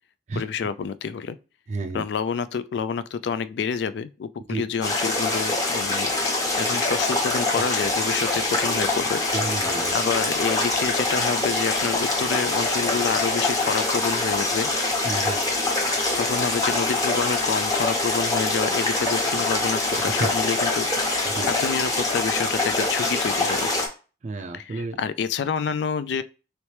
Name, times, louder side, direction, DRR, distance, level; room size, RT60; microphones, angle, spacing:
voice 1, 0.3-1.4 1.9-9.2 9.9-14.7 16.2-21.2 21.5-23.7 24.5-26.2, left 6 dB, 80° left, 0.3 m, -28 dB
voice 2, 1.7-2.0 4.5-4.6 9.3-10.0 15.0-15.4 20.2-20.3 21.2-21.5 24.2-25.0, right 3 dB, 40° right, 0.4 m, -30 dB
sound 1, 4.8-23.9, left 2 dB, 20° left, 0.8 m, -24 dB
3.1 x 3.0 x 3.2 m
head